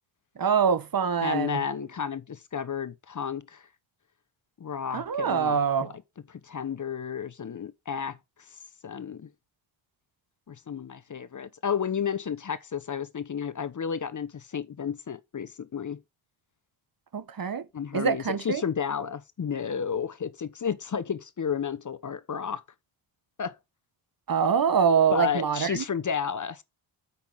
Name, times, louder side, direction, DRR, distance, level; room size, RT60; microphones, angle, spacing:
voice 1, 0.4-1.6 4.9-5.9 17.1-17.6 17.9-18.6 24.3-25.8, right 6 dB, 45° right, 1.4 m, -24 dB
voice 2, 1.2-3.7 4.6-5.9 6.3-9.3 10.5-16.0 17.7-22.6 23.4-23.6 25.1-26.6, left 7 dB, 35° left, 1.0 m, -32 dB
8.3 x 5.9 x 3.6 m
supercardioid pair, 60°, 50 cm